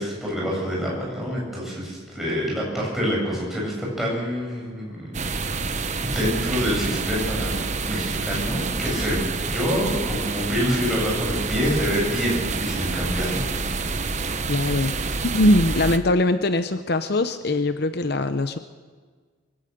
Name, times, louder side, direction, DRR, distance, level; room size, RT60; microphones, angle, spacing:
voice 1, 0.0-5.1 5.4-5.6 6.0-13.5, equal, ahead, -5 dB, 7.5 m, -26 dB
sound 1, 5.1-16.0, right 4 dB, 35° right, 1.0 m, -28 dB
voice 2, 14.5-14.9 15.2-18.6, left 1 dB, 55° left, 10 dB, 0.8 m, -21 dB
23.5 x 16.5 x 6.8 m, 1.5 s
head